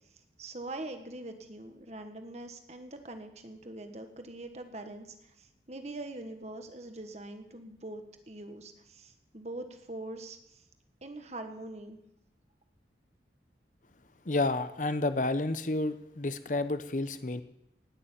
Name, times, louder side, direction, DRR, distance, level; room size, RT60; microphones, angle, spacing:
voice 1, 0.4-10.6 11.0-12.0, right 2 dB, 40° right, 7 dB, 1.5 m, -43 dB
voice 2, 14.2-17.4, left 2 dB, 45° left, 11 dB, 0.8 m, -30 dB
18.0 x 6.9 x 8.9 m, 0.84 s
head